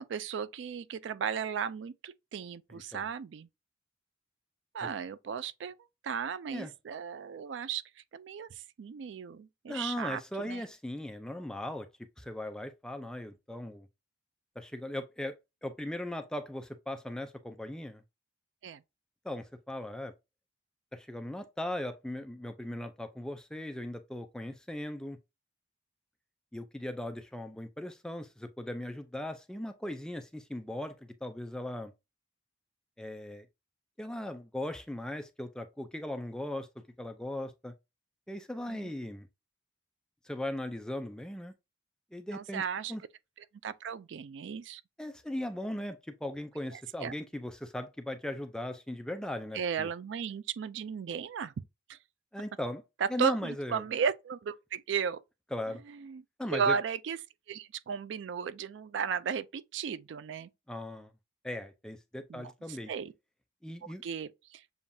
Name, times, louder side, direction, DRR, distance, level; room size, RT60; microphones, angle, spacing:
voice 1, 0.0-3.5 4.7-5.7 6.0-7.8 8.1-10.6 18.6-18.8 38.7-38.9 42.3-43.0 43.6-44.8 46.7-47.1 49.5-51.5 51.9-52.0 53.0-55.2 55.9-56.2 56.5-57.2 57.5-60.5 62.3-63.1 64.0-64.6, right 6 dB, 70° right, 0.4 m, -35 dB
voice 2, 9.7-11.9 12.2-13.9 14.6-15.4 15.6-18.0 19.2-20.1 20.9-25.2 26.5-31.0 31.2-31.9 33.0-33.5 34.0-36.7 37.0-37.7 38.3-39.3 40.2-41.5 42.1-42.6 42.9-43.0 45.0-49.9 52.3-52.8 53.1-53.8 55.5-55.8 56.4-56.8 60.7-61.1 61.4-62.9 63.6-64.0, left 1 dB, 5° left, 0.4 m, -38 dB
7.0 x 2.4 x 2.6 m
head